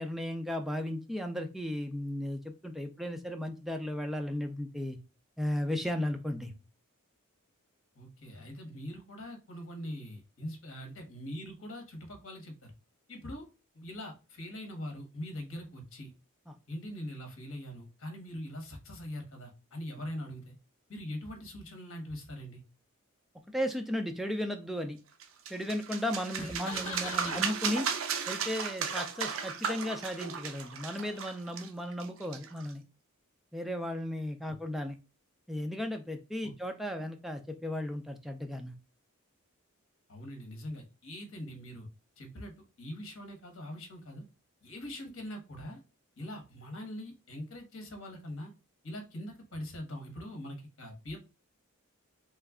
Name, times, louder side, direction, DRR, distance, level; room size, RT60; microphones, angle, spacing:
voice 1, 0.0-5.0 5.4-6.5 16.5-16.6 23.5-25.0 25.5-27.9 28.3-32.8 33.5-35.0 35.5-38.7, left 1 dB, ahead, 4 dB, 0.3 m, -35 dB
voice 2, 7.9-12.7 13.1-13.5 13.7-16.1 16.7-20.5 20.9-22.6 26.4-27.4 34.5-34.6 36.4-36.5 40.1-41.9 42.2-42.5 42.8-44.2 44.6-45.8 46.2-48.5 48.8-51.2, left 1 dB, 60° left, 4 dB, 1.0 m, -42 dB
sound 1, 25.2-32.7, right 6 dB, 60° right, 0.5 m, -35 dB
3.2 x 2.3 x 3.5 m, 0.30 s
head